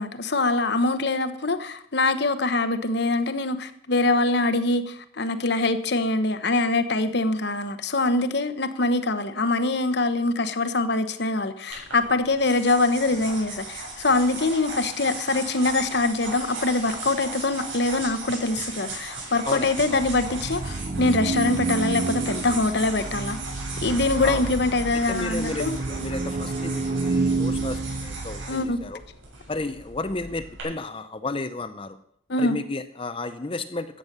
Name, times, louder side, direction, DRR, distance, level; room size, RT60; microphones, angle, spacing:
voice 1, 0.0-23.4 23.8-25.8 28.5-28.8 32.3-32.6, left 2 dB, 60° left, 1.0 m, -24 dB
sound 1, 11.7-30.6, right 3 dB, 85° right, 7.3 m, -37 dB
voice 2, 19.5-20.0 24.2-24.5 25.1-29.0 29.5-32.0 32.4-34.0, left 2 dB, 25° left, 0.6 m, -32 dB
sound 2, 19.6-29.0, right 3 dB, 40° right, 0.5 m, -29 dB
13.5 x 9.0 x 6.7 m
head